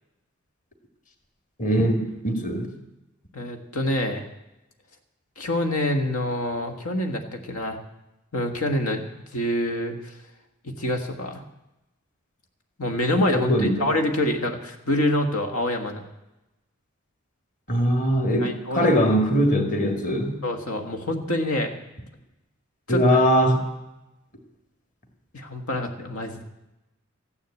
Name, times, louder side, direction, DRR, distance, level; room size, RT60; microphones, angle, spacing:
voice 1, 1.6-2.7 13.4-13.9 17.7-20.4 22.9-23.6, equal, 35° left, 5 dB, 1.9 m, -21 dB
voice 2, 3.3-4.2 5.4-7.8 8.3-9.0 9.3-10.1 10.6-11.4 12.8-16.0 18.4-18.9 20.4-21.7 22.9-23.2 25.3-26.4, left 1 dB, 90° left, 5 dB, 1.7 m, -26 dB
14.5 x 10.5 x 8.3 m, 0.94 s
head